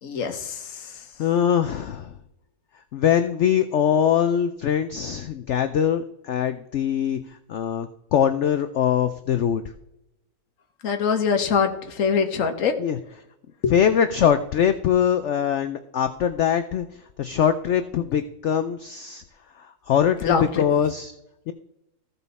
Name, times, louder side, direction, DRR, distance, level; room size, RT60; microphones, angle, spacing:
voice 1, 0.0-0.9 10.8-12.7 13.6-13.7 20.2-20.6, left 6 dB, 55° left, 5 dB, 1.4 m, -23 dB
voice 2, 0.8-2.1 2.9-9.6 12.8-13.0 13.7-16.9 17.2-19.2 19.6-21.1 21.5-21.6, left 9 dB, 80° left, 9 dB, 0.6 m, -22 dB
15.0 x 5.5 x 4.1 m, 0.88 s
omnidirectional pair, 1.8 m